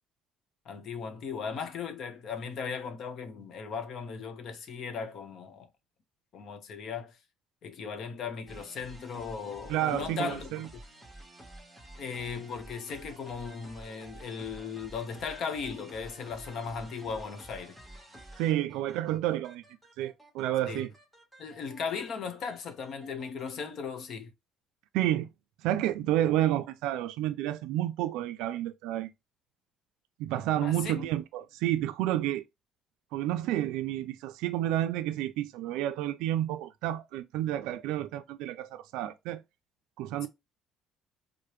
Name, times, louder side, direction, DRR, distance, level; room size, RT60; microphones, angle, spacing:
voice 1, 0.6-5.7 6.3-7.2 7.6-10.5 12.0-17.8 20.7-20.9 21.4-24.3 30.6-31.1 40.2-40.3, left 6 dB, 60° left, 0.9 m, -37 dB
sound 1, 8.5-23.5, right 1 dB, ahead, 1.2 m, -51 dB
voice 2, 9.7-10.7 18.4-19.6 20.0-20.9 24.9-25.3 25.6-29.1 30.2-32.4 33.1-39.4 40.0-40.3, right 13 dB, 85° right, 0.3 m, -30 dB
4.7 x 2.1 x 3.0 m
cardioid pair, 110°, 0 cm